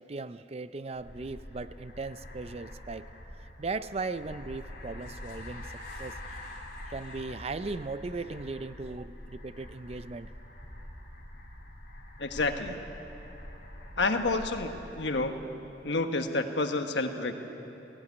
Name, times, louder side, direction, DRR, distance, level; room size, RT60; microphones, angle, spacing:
voice 1, 0.0-3.1 3.4-5.7 6.0-6.2 6.9-10.3, right 3 dB, 35° right, 13 dB, 0.5 m, -38 dB
sound 1, 1.0-15.4, left 1 dB, 50° left, 3.6 m, -45 dB
voice 2, 12.2-12.8 14.0-14.7 15.0-15.4 15.8-17.3, left 3 dB, 75° left, 6 dB, 1.4 m, -29 dB
18.0 x 17.0 x 9.6 m, 2.9 s
head